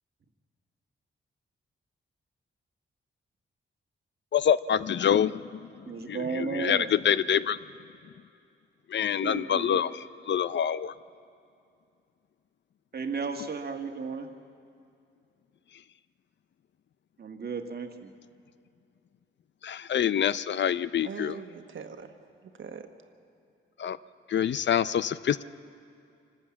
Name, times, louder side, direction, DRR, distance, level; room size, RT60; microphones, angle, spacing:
voice 1, 4.3-5.7 6.6-6.8 7.1-7.6 8.9-9.9 10.3-10.9 19.6-21.3 23.8-24.0 24.3-25.4, left 9 dB, 60° left, 16 dB, 0.5 m, -26 dB
voice 2, 5.8-6.9 9.2-9.9 12.9-14.3 17.2-18.1, right 5 dB, 50° right, 5 dB, 1.4 m, -34 dB
voice 3, 9.0-9.8 21.0-22.2 22.4-22.9, right 6 dB, 65° right, 6 dB, 1.3 m, -43 dB
25.5 x 13.0 x 8.6 m, 2.5 s
wide cardioid pair, 115°, 21 cm